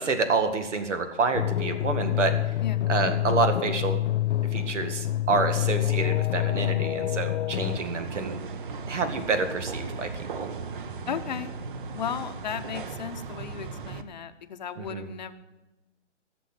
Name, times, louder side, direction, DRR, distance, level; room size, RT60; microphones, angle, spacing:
voice 1, 0.0-2.3 2.9-4.0 4.5-8.4 8.9-10.1 10.4-10.5 14.8-15.1, right 4 dB, 80° right, 8 dB, 2.0 m, -28 dB
sound 1, 1.3-7.8, left 14 dB, 75° left, 0.6 m, -27 dB
sound 2, 7.6-14.0, right 4 dB, 45° right, 1.0 m, -37 dB
voice 2, 11.1-11.5 11.9-15.3, left 8 dB, 40° left, 9 dB, 0.8 m, -35 dB
16.0 x 7.0 x 8.1 m, 1.0 s
hypercardioid pair, 160°, 35 cm